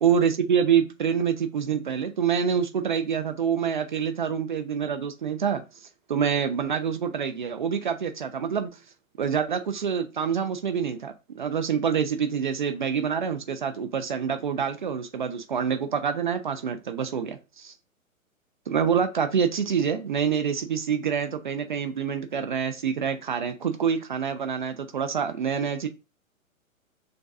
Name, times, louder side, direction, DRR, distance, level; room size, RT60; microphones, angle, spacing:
voice 1, 0.0-5.6 6.1-8.7 9.2-17.7 18.7-25.9, right 7 dB, 40° right, 0.4 m, -26 dB
6.4 x 2.3 x 2.5 m
figure-of-eight pair, 120°, 41 cm